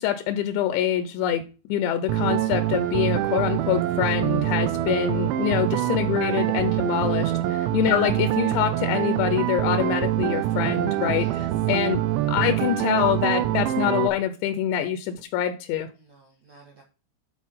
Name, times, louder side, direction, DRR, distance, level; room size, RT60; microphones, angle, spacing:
voice 1, 0.0-1.4 1.7-12.0 12.3-15.9, left 10 dB, 80° left, 10 dB, 2.9 m, -25 dB
sound 1, 2.1-14.1, right 14 dB, 90° right, 3.0 m, -25 dB
voice 2, 7.0-7.6 11.1-11.5 16.0-16.8, right 3 dB, 75° right, -1 dB, 1.5 m, -52 dB
9.5 x 4.2 x 5.4 m, 0.33 s
omnidirectional pair, 5.3 m